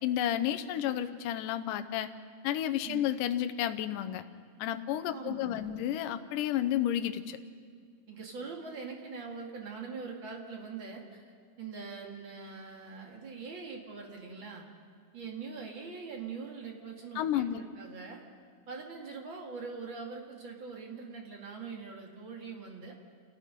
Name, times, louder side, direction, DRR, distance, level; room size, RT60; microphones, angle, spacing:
voice 1, 0.0-2.1 2.4-4.2 4.6-7.4 17.2-17.6, left 11 dB, 75° left, 9 dB, 2.1 m, -31 dB
voice 2, 5.1-5.8 8.1-11.2 11.6-14.6 15.1-18.2 18.7-22.9, right 5 dB, 35° right, 1 dB, 2.4 m, -43 dB
28.0 x 18.5 x 5.3 m, 2.1 s
omnidirectional pair, 4.4 m